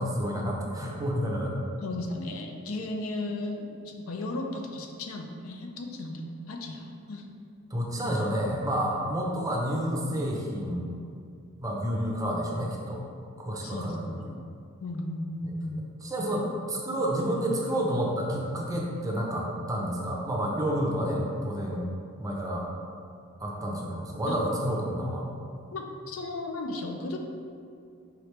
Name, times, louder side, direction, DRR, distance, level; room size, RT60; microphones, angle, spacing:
voice 1, 0.0-1.5 7.7-10.9 11.6-13.0 13.4-14.1 15.4-15.6 16.0-21.8 22.2-22.7 23.4-25.3, equal, 15° right, -2 dB, 0.5 m, -29 dB
voice 2, 1.8-7.2 13.6-14.3 14.8-15.8 24.3-24.4 25.7-27.2, left 2 dB, 75° left, 3 dB, 0.5 m, -35 dB
4.8 x 3.1 x 3.2 m, 2.4 s
head